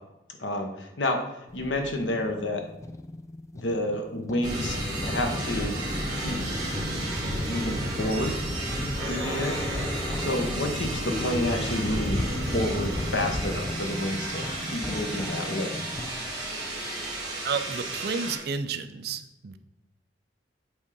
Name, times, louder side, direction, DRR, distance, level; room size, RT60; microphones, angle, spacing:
voice 1, 0.4-1.2 1.5-2.6 3.5-5.7 6.2-6.4 7.4-8.4 8.8-9.6 10.2-15.8, left 1 dB, 85° left, 4 dB, 1.1 m, -30 dB
sound 1, 1.5-16.1, left 1 dB, 15° left, 0.4 m, -38 dB
sound 2, 4.4-18.4, right 1 dB, 25° right, 2.1 m, -32 dB
sound 3, 11.1-14.2, left 3 dB, 45° left, 1.6 m, -42 dB
voice 2, 17.4-19.6, right 5 dB, 60° right, 9 dB, 0.5 m, -31 dB
7.9 x 3.6 x 5.4 m, 0.89 s
head